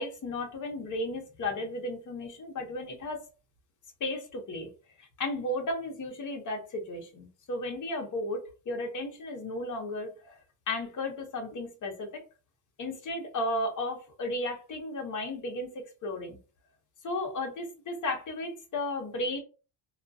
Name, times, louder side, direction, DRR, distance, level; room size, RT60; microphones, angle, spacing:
voice 1, 0.0-3.3 4.0-4.7 5.0-10.4 10.7-12.2 12.8-16.4 17.0-19.4, left 1 dB, 40° left, 3 dB, 0.8 m, -34 dB
2.3 x 2.2 x 2.6 m, 0.34 s
cardioid pair, 120°, 48 cm